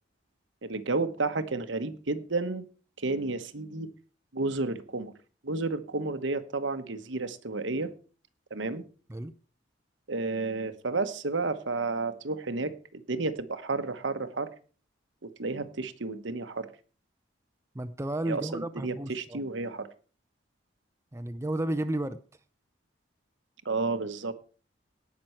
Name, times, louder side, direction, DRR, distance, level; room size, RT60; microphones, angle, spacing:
voice 1, 0.6-2.6 3.0-3.9 4.3-5.1 5.4-7.9 8.5-8.8 10.1-14.5 15.2-16.7 18.3-19.9 23.6-24.3, right 3 dB, 75° right, 1.1 m, -31 dB
voice 2, 17.7-19.4 21.1-22.2, right 1 dB, 15° right, 0.5 m, -32 dB
18.0 x 6.1 x 4.5 m
head